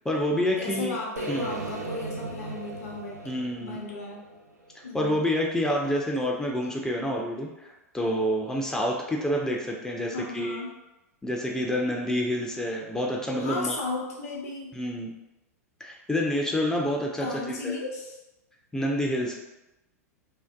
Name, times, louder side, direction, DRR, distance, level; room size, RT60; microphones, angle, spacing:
voice 1, 0.1-1.0 1.3-1.5 3.3-3.8 4.9-10.6 11.2-13.8 14.7-15.1 15.8-17.7 18.7-19.3, equal, 5° left, -1 dB, 0.3 m, -28 dB
voice 2, 0.6-3.1 3.6-4.3 4.8-5.2 10.1-10.7 13.4-14.7 17.2-18.2, left 3 dB, 65° left, -3 dB, 0.6 m, -35 dB
sound 1, 1.2-5.2, right 3 dB, 80° right, 0.4 m, -37 dB
2.6 x 2.1 x 2.2 m, 0.97 s
figure-of-eight pair, 95°, 9 cm